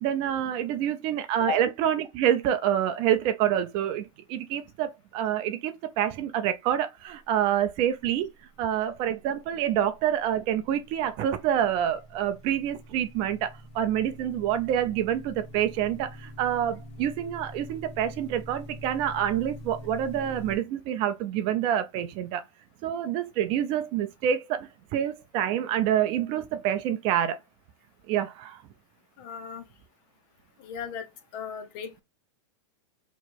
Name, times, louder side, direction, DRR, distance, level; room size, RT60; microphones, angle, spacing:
voice 1, 0.0-4.0 4.3-8.3 8.6-22.4 22.8-27.4 28.1-28.6, right 10 dB, 35° right, 0.5 m, -27 dB
sound 1, 9.7-20.6, equal, 60° left, 1.1 m, -45 dB
voice 2, 29.2-29.6 30.6-31.0 31.3-32.0, left 7 dB, 40° left, 0.8 m, -35 dB
3.1 x 2.8 x 4.4 m
supercardioid pair, 145°, 16 cm